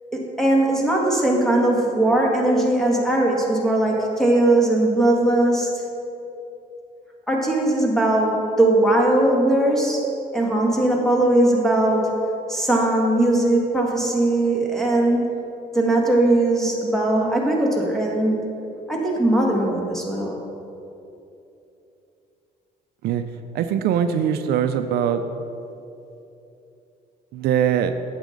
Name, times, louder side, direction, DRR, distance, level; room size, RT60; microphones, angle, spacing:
voice 1, 0.1-5.7 7.3-10.0 10.3-12.2 12.5-15.3 15.7-18.5 18.9-20.4, right 1 dB, ahead, -2 dB, 1.8 m, -19 dB
voice 2, 23.5-25.2 27.3-28.0, right 9 dB, 70° right, 9 dB, 0.5 m, -21 dB
11.0 x 8.2 x 3.9 m, 2.8 s
cardioid pair, 110°, 17 cm